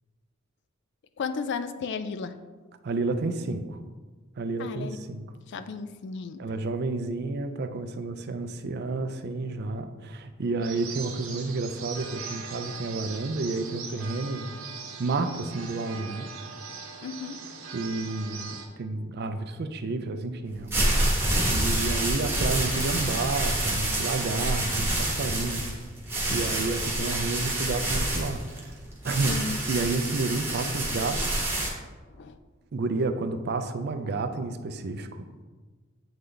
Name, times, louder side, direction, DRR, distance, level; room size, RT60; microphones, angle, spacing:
voice 1, 1.2-2.4 4.6-5.0 5.5-6.4 17.0-17.4 29.3-29.6 32.1-32.4, left 5 dB, 55° left, 11 dB, 0.4 m, -34 dB
voice 2, 2.8-3.8 4.4-5.3 6.4-14.5 15.0-16.3 17.7-25.7 26.3-29.4 29.7-31.5 32.7-35.2, right 3 dB, 50° right, 9 dB, 0.4 m, -31 dB
sound 1, 10.6-18.7, right 5 dB, 85° right, 0.9 m, -40 dB
sound 2, 20.5-31.7, right 1 dB, 10° right, 1.2 m, -27 dB
8.0 x 3.8 x 3.3 m, 1.4 s
head